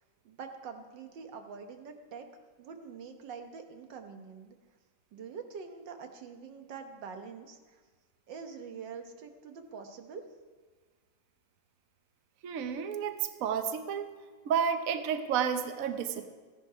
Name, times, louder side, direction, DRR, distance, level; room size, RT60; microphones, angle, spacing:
voice 1, 0.3-2.3 2.6-4.6 5.1-7.8 8.3-10.2, right 6 dB, 90° right, 6 dB, 1.8 m, -45 dB
voice 2, 12.4-14.1 14.5-16.3, right 7 dB, 60° right, 8 dB, 1.1 m, -31 dB
15.0 x 10.5 x 4.9 m, 1.4 s
omnidirectional pair, 1.9 m